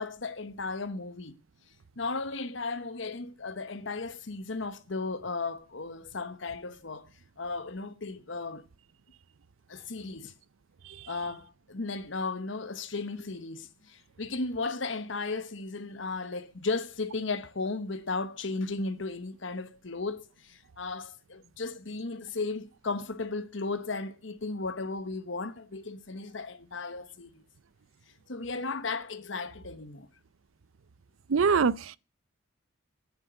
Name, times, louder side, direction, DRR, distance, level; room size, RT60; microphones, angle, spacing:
voice 1, 0.0-1.3 2.0-7.1 7.4-8.6 9.7-10.3 11.1-27.4 28.3-30.1, left 3 dB, 65° left, 1.1 m, -35 dB
voice 2, 31.3-32.0, right 5 dB, 80° right, 0.5 m, -23 dB
9.9 x 7.9 x 9.1 m
head